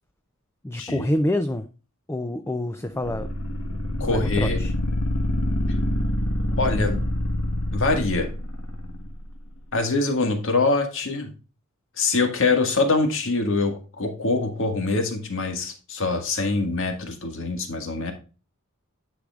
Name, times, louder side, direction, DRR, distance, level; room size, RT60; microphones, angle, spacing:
voice 1, 0.6-1.7 2.1-3.3 4.0-4.7, left 1 dB, 10° left, 8 dB, 0.5 m, -27 dB
sound 1, 3.0-9.2, left 1 dB, 80° left, 1.4 m, -26 dB
voice 2, 4.0-4.6 6.6-7.0 7.7-8.3 9.7-11.3 12.0-18.1, left 3 dB, 60° left, 5 dB, 1.9 m, -24 dB
10.0 x 6.2 x 2.4 m, 0.33 s
head